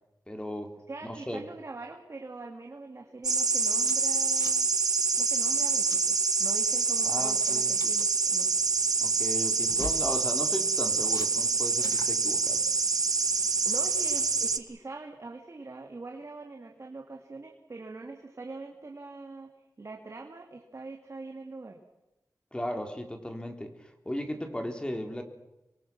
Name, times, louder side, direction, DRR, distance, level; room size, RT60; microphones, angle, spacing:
voice 1, 0.3-0.7 1.0-1.4 7.0-7.7 9.0-12.6 22.5-23.7 24.1-25.2, left 1 dB, 15° left, 4 dB, 3.7 m, -36 dB
voice 2, 0.9-4.7 5.2-8.5 13.6-19.5 19.8-21.8, right 3 dB, 45° right, 2 dB, 2.5 m, -43 dB
sound 1, 3.2-14.6, right 4 dB, 65° right, 1.4 m, -26 dB
sound 2, 3.8-4.7 5.0-5.2 5.6-6.0 6.6-6.9 7.4-8.1 9.6-10.1 11.1-11.3 11.8-12.1, left 3 dB, 65° left, 2.0 m, -43 dB
26.5 x 23.0 x 6.2 m, 0.95 s
wide cardioid pair, 95°, 7 cm